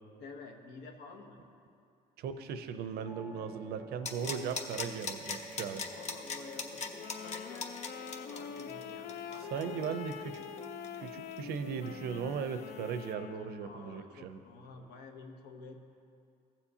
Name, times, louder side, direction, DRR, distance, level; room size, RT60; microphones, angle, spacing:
voice 1, 0.2-1.4 5.8-9.9 13.6-15.8, left 4 dB, 85° left, 3 dB, 1.0 m, -50 dB
voice 2, 2.2-5.8 9.5-10.4 11.0-14.4, right 7 dB, 70° right, 10 dB, 0.6 m, -38 dB
sound 1, 3.1-12.4, left 1 dB, 10° right, 0.6 m, -51 dB
sound 2, 4.1-11.6 11.9-12.0, left 4 dB, 40° left, 0.8 m, -40 dB
Wind instrument woodwind instrument, 7.0-13.8, left 8 dB, 65° left, 0.4 m, -45 dB
15.0 x 7.2 x 2.8 m, 2.5 s
cardioid pair, 110°, 17 cm